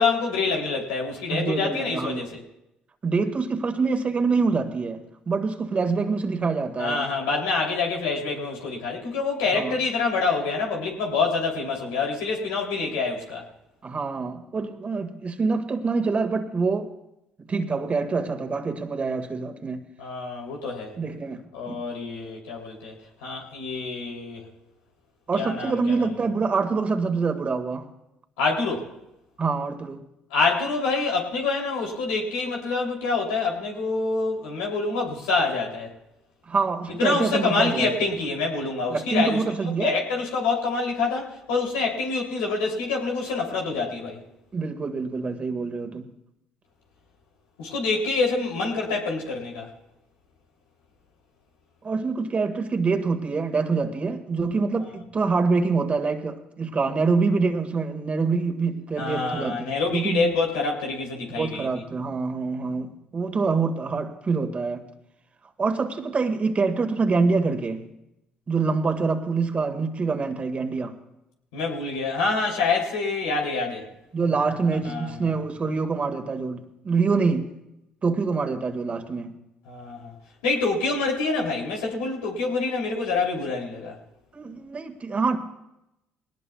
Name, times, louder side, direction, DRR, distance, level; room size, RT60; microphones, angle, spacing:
voice 1, 0.0-2.4 6.8-13.4 20.0-20.9 21.5-22.9 23.2-24.4 25.4-26.1 28.4-28.9 30.3-35.9 37.0-39.4 39.8-44.2 47.6-49.7 59.0-61.8 71.5-73.8 74.8-75.3 79.7-80.1 80.4-83.9, left 4 dB, 85° left, 0 dB, 3.1 m, -26 dB
voice 2, 1.3-2.3 3.0-7.1 9.5-9.8 13.8-16.9 17.5-19.9 21.0-21.8 25.3-27.9 29.4-30.1 36.5-38.1 38.9-40.0 44.5-46.1 51.8-60.3 61.4-64.9 65.6-67.9 68.5-71.0 74.1-77.5 78.0-79.4 84.3-85.4, right 4 dB, 40° right, 7 dB, 1.8 m, -25 dB
20.5 x 18.5 x 2.4 m, 0.87 s
hypercardioid pair, 60°, 4 cm